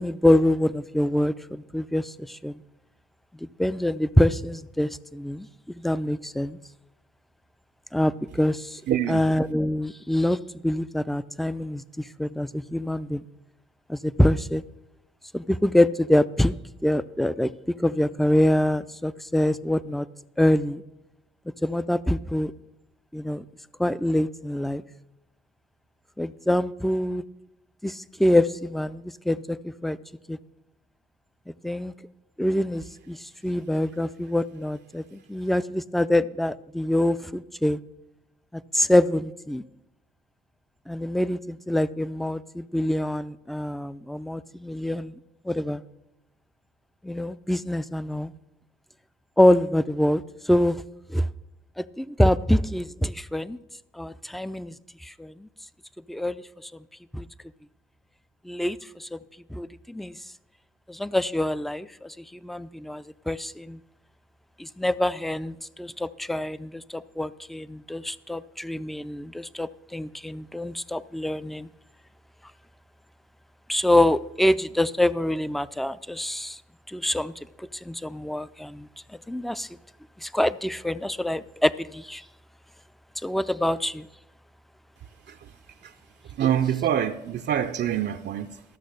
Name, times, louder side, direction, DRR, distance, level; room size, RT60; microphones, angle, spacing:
voice 1, 0.0-2.6 3.4-6.6 7.9-8.8 9.1-13.2 13.9-14.6 15.3-16.5 16.8-17.5 17.8-20.1 20.4-20.8 21.6-22.5 23.1-23.4 23.8-24.8 26.2-27.2 27.8-30.0 30.3-30.4 31.6-31.9 32.4-37.8 38.5-39.6 40.9-45.2 45.4-45.8 47.0-48.3 49.4-50.8 51.1-51.3 51.8-53.6 53.9-54.7 55.0-55.5 56.1-56.7 57.1-57.3 58.4-59.2 59.5-60.2 60.9-63.8 64.6-71.7 73.7-76.6 76.9-78.9 79.3-79.7 80.2-82.2 83.2-84.1, left 1 dB, ahead, 0.3 m, -25 dB
voice 2, 8.9-9.2 85.3-85.5 85.8-85.9 86.3-88.6, right 10 dB, 60° right, 0.5 m, -26 dB
13.5 x 6.3 x 6.5 m
cardioid pair, 90°, 20 cm